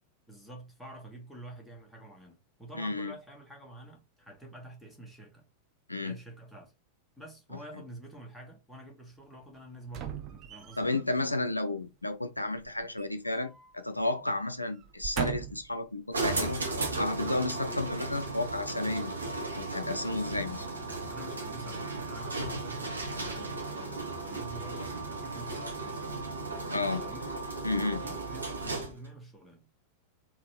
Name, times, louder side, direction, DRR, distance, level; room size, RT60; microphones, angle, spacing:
voice 1, 0.3-5.5 5.9-6.7 7.2-10.9 20.0-20.4 21.1-26.2 26.9-27.3 27.7-29.7, right 1 dB, ahead, 1.6 m, -48 dB
voice 2, 2.7-3.1 5.9-6.1 10.8-19.1 19.6-20.6 26.7-27.0 27.6-28.0, left 2 dB, 85° left, 0.6 m, -32 dB
sound 1, 9.9-11.0 12.6-13.7 14.0-14.2 14.8-15.8 16.4-16.5, right 9 dB, 35° right, 0.9 m, -38 dB
sound 2, 16.1-29.1, right 3 dB, 75° right, 1.1 m, -35 dB
3.8 x 3.1 x 4.5 m
figure-of-eight pair, 90°, 0 cm